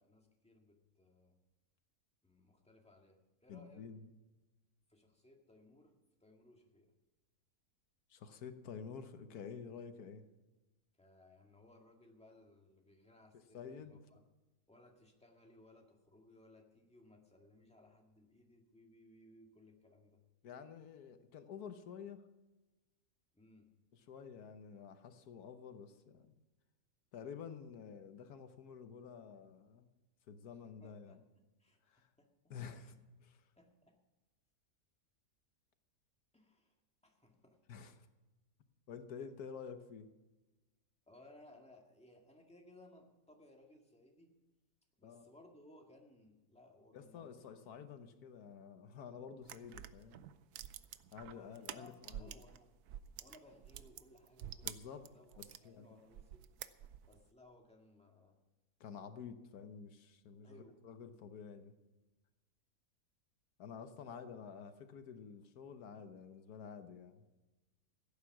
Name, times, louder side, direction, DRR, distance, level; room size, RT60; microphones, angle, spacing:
voice 1, 0.0-1.4 2.2-3.9 4.9-5.9 6.2-6.9 11.0-14.3 14.7-20.2 23.3-23.7 30.8-32.3 32.8-33.0 33.6-34.0 36.3-36.8 37.0-37.8 41.1-44.3 45.0-47.6 51.2-52.7 53.2-56.5 57.0-58.4 60.4-60.8, left 1 dB, 5° left, 1 dB, 1.9 m, -63 dB
voice 2, 3.5-4.1 8.1-10.2 13.5-14.0 20.4-22.2 23.9-26.4 27.1-29.9 30.3-31.2 31.8-32.1 32.5-32.9 33.2-33.4 37.7-38.1 38.9-40.1 45.0-45.3 46.9-50.2 51.1-52.3 54.6-55.0 55.4-56.0 58.8-61.7 63.6-67.2, left 6 dB, 85° left, 9 dB, 1.5 m, -50 dB
sound 1, 49.4-52.6 52.9-55.6 56.1-57.2, right 11 dB, 90° right, 1.2 m, -49 dB
16.0 x 9.2 x 6.0 m, 1.1 s
omnidirectional pair, 1.6 m